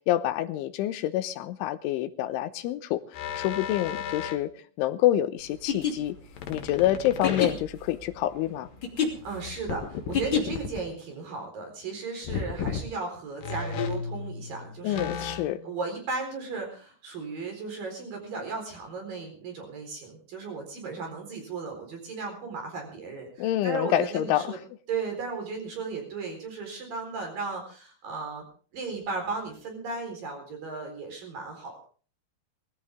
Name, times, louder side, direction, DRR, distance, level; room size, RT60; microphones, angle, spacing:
voice 1, 0.1-4.5 4.8-6.2 6.5-8.7 14.8-15.6 23.4-24.6, left 13 dB, 85° left, 3.3 m, -27 dB
sound 1, 3.1-4.4 6.4-7.9 9.6-10.8 12.2-12.9 13.4-15.7, left 6 dB, 65° left, 2.5 m, -34 dB
sound 2, 5.5-10.8, left 7 dB, 30° left, 2.7 m, -30 dB
voice 2, 9.0-24.6 24.9-28.4 28.7-31.9, right 4 dB, 50° right, 5.6 m, -36 dB
20.0 x 15.5 x 3.6 m
omnidirectional pair, 5.5 m